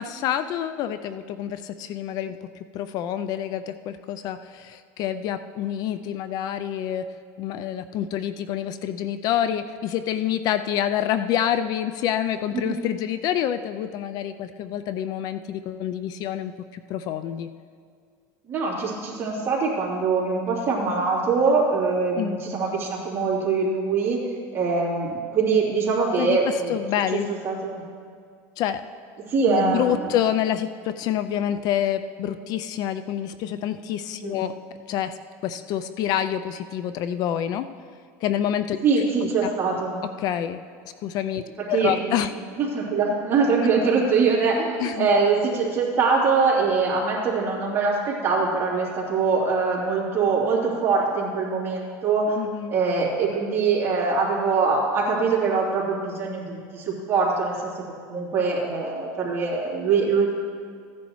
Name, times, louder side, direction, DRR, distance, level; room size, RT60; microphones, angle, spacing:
voice 1, 0.0-2.4 2.7-17.5 22.2-22.4 26.2-27.3 28.6-28.8 29.5-34.5 34.9-37.7 38.2-38.8 39.4-39.5 40.2-42.3 44.8-45.1 52.4-52.7, left 10 dB, 50° left, 11 dB, 0.4 m, -27 dB
voice 2, 18.5-24.2 24.5-26.7 27.1-27.8 29.3-30.1 34.2-34.4 38.8-40.0 41.7-42.2 42.6-52.4 52.7-57.7 58.0-60.3, right 4 dB, 30° right, -5 dB, 3.0 m, -23 dB
15.5 x 10.0 x 3.1 m, 2.1 s
supercardioid pair, 130°, 8 cm